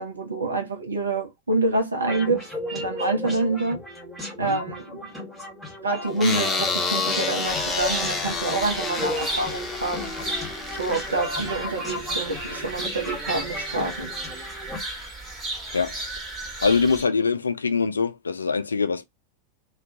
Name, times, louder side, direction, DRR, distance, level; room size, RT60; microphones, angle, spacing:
voice 1, 0.0-3.8 4.4-5.1 5.8-10.1 10.8-14.1, right 2 dB, 75° right, 0.5 m, -27 dB
sound 1, 2.0-14.8, left 1 dB, ahead, 1.1 m, -35 dB
sound 2, 6.2-11.5, left 4 dB, 15° left, 0.6 m, -29 dB
sound 3, 7.4-17.0, right 2 dB, 20° right, 1.1 m, -34 dB
voice 2, 16.6-19.0, left 5 dB, 75° left, 0.3 m, -23 dB
2.3 x 2.1 x 2.6 m
figure-of-eight pair, 90°, 0 cm